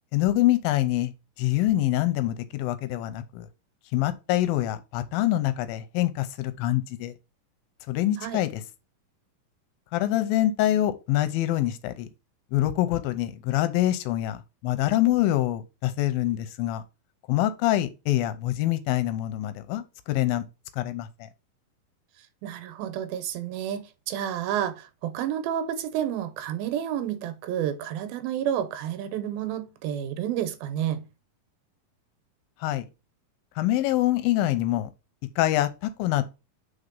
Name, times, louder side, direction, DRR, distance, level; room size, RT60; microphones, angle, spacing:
voice 1, 0.1-1.1 1.4-3.5 3.9-7.1 7.9-8.6 9.9-12.1 12.5-16.8 17.3-20.5 20.8-21.1 32.6-32.9 33.6-34.9 35.4-36.2, left 14 dB, 90° left, 2.4 m, -25 dB
voice 2, 22.4-31.1, right 10 dB, 85° right, 2.6 m, -30 dB
5.0 x 4.2 x 5.2 m
omnidirectional pair, 4.2 m